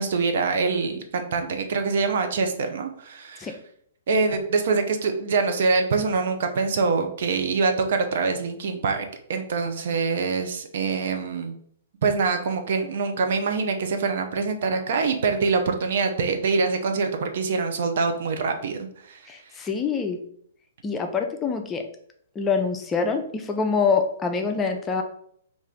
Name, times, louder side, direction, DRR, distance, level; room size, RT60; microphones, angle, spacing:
voice 1, 0.0-3.5 4.1-11.6 12.0-19.2, right 4 dB, 60° right, 5 dB, 0.5 m, -24 dB
voice 2, 19.3-20.2 20.8-21.8 22.4-25.0, left 5 dB, 15° left, 4 dB, 0.5 m, -25 dB
3.1 x 2.5 x 3.7 m, 0.64 s
figure-of-eight pair, 120°, 0 cm